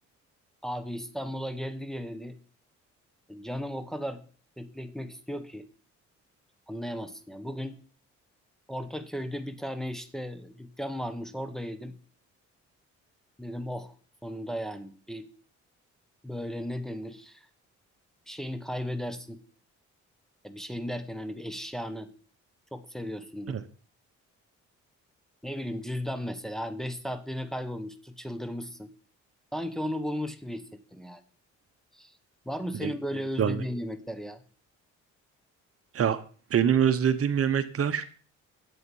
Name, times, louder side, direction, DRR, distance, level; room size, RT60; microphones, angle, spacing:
voice 1, 0.6-2.4 3.3-4.2 4.6-5.7 6.7-7.8 8.7-11.9 13.4-13.9 14.2-15.3 16.2-17.5 18.3-19.4 20.4-22.1 22.7-23.6 25.4-28.9 29.5-31.2 31.9-32.1 32.4-34.4, equal, ahead, 7 dB, 1.2 m, -35 dB
voice 2, 36.5-38.1, right 8 dB, 50° right, 12 dB, 1.0 m, -24 dB
11.0 x 8.0 x 5.5 m, 0.42 s
cardioid pair, 90°, 30 cm